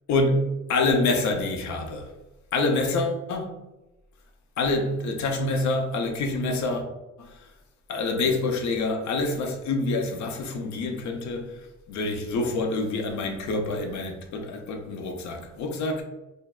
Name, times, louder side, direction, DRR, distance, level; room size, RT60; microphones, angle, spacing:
voice 1, 0.1-2.1 2.5-3.6 4.6-6.8 7.2-7.5 7.9-16.0, left 2 dB, 70° left, 0.6 m, -27 dB
2.6 x 2.2 x 2.2 m
cardioid pair, 90°, 30 cm